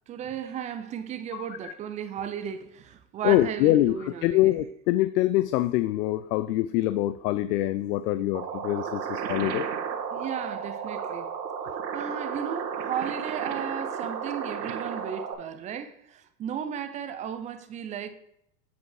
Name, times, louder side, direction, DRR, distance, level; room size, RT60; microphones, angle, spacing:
voice 1, 0.1-4.5 10.1-11.3 11.9-18.1, right 8 dB, 15° right, 0.3 m, -35 dB
voice 2, 1.3-1.7 3.2-9.6, left 15 dB, 70° left, 0.6 m, -25 dB
sound 1, 8.3-15.3, right 7 dB, 85° right, 1.4 m, -33 dB
8.2 x 5.1 x 4.8 m
supercardioid pair, 120°, 49 cm